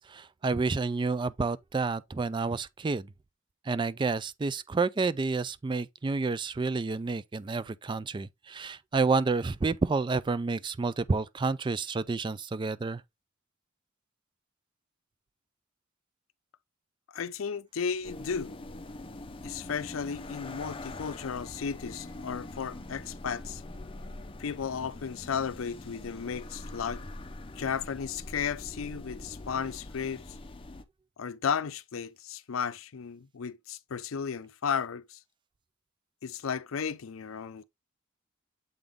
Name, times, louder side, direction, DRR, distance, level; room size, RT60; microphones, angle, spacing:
voice 1, 0.1-3.1 3.7-13.0, right 4 dB, 25° right, 0.3 m, -29 dB
voice 2, 17.1-18.6 19.4-23.6 24.4-27.0 27.6-30.2 31.2-35.2 36.2-37.6, left 6 dB, 85° left, 0.5 m, -34 dB
sound 1, 18.0-30.8, left 2 dB, 25° left, 0.6 m, -43 dB
7.8 x 3.7 x 3.5 m
head